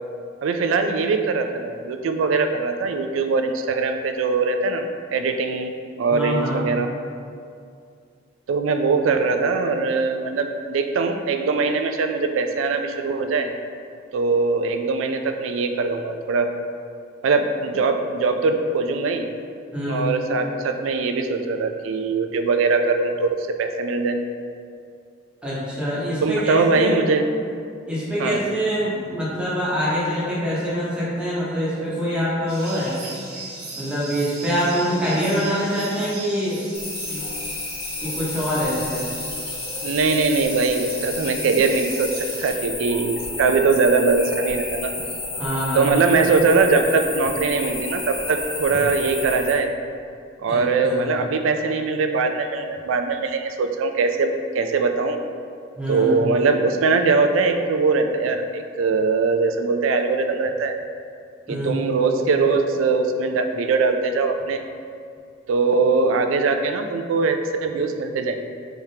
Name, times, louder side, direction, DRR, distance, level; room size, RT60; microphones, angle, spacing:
voice 1, 0.4-5.7 6.0-6.9 8.5-13.5 14.1-16.5 17.2-19.3 19.9-24.2 26.2-27.3 28.2-28.4 39.8-44.9 45.7-49.7 50.4-55.2 55.9-60.8 61.5-64.6 65.5-68.5, right 4 dB, 90° right, 6 dB, 0.3 m, -21 dB
voice 2, 6.1-6.6 19.7-20.1 25.4-27.1 27.9-32.9 33.7-36.7 37.1-37.2 38.0-39.1 45.4-45.9 50.5-51.2 55.8-56.1 61.5-61.8, equal, 5° right, -9 dB, 1.0 m, -25 dB
sound 1, 32.5-42.5, right 3 dB, 50° right, 1.0 m, -38 dB
sound 2, 36.7-49.5, left 2 dB, 70° left, 1.0 m, -31 dB
4.4 x 3.5 x 2.8 m, 2.4 s
head